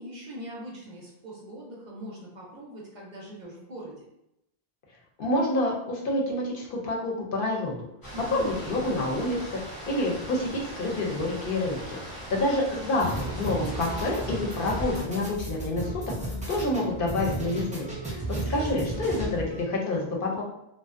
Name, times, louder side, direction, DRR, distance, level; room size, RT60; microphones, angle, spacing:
voice 1, 0.0-4.1 8.1-8.5 12.8-13.3 19.4-19.6, equal, 55° right, -3 dB, 0.6 m, -42 dB
voice 2, 5.2-7.9 8.3-9.4 9.6-15.9 16.2-18.2 18.5-20.4, left 1 dB, 65° left, -2 dB, 0.7 m, -28 dB
sound 1, 8.0-15.0, equal, 25° left, 0.6 m, -40 dB
sound 2, 13.0-19.6, right 2 dB, 10° right, 0.3 m, -34 dB
2.5 x 2.1 x 2.4 m, 0.83 s
omnidirectional pair, 1.0 m